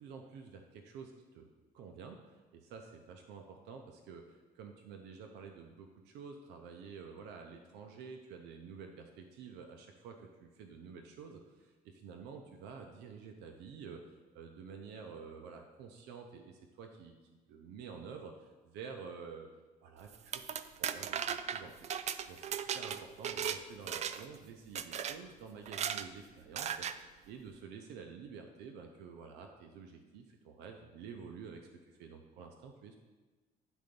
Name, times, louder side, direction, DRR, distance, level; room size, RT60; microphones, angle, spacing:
voice 1, 0.0-1.5 1.7-19.5 19.8-20.4 20.8-21.9 22.3-33.0, right 5 dB, 85° right, 4 dB, 0.7 m, -50 dB
sound 1, 20.1-23.6 23.9-24.4 24.8-25.2 25.7-26.1 26.6-27.0, right 8 dB, 40° right, 0.4 m, -37 dB
10.0 x 3.9 x 5.3 m, 1.3 s
cardioid pair, 110°, 17 cm